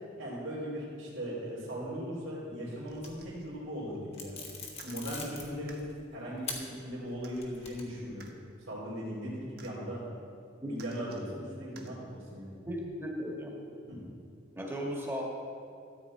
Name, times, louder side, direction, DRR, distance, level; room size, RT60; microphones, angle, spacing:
voice 1, 0.2-4.4 4.8-5.8 6.1-8.2 8.7-10.0 10.6-12.5 13.9-14.0, equal, 85° right, -10 dB, 2.9 m, -38 dB
sound 1, 2.9-3.5 4.1-6.0 6.4-6.6 7.1-8.1, left 4 dB, 30° left, 1.3 m, -42 dB
sound 2, 2.9-3.5 4.7-5.0 5.7-5.8 6.6-6.7 7.2-7.4 8.2-8.3 9.6-9.7 10.8-11.3 11.8-11.9 12.8-12.9, right 5 dB, 50° right, 1.0 m, -54 dB
voice 2, 12.6-13.5 14.5-15.2, equal, 10° right, -2 dB, 1.7 m, -36 dB
13.5 x 8.4 x 4.3 m, 2.4 s
head